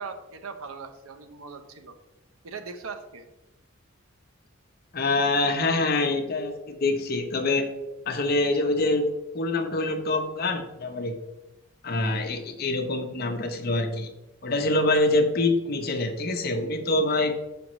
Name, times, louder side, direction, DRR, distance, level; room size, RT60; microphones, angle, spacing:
voice 1, 0.0-2.0 2.4-3.3, right 5 dB, 85° right, 7 dB, 0.7 m, -39 dB
voice 2, 4.9-7.7 8.1-9.1 9.3-11.2 11.8-14.1 14.4-17.3, left 2 dB, 45° left, 5 dB, 0.6 m, -25 dB
6.2 x 5.1 x 3.0 m, 0.99 s
head